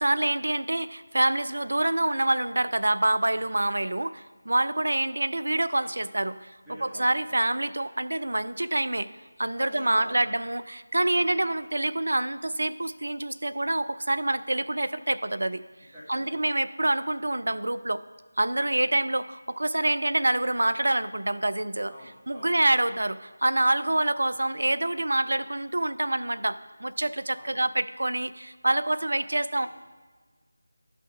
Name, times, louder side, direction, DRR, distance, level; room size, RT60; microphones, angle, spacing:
voice 1, 0.0-6.5 6.8-9.1 9.4-15.6 16.1-18.0 18.4-21.9 22.3-29.7, right 1 dB, 60° right, 13 dB, 0.3 m, -26 dB
voice 2, 6.6-7.4 9.6-10.3 10.9-11.3 15.8-16.3 18.6-19.0 21.9-22.6 27.3-27.6 28.7-28.8 29.5-29.7, equal, 5° right, -15 dB, 1.4 m, -46 dB
12.5 x 5.8 x 3.5 m, 1.4 s
figure-of-eight pair, 165°, 0 cm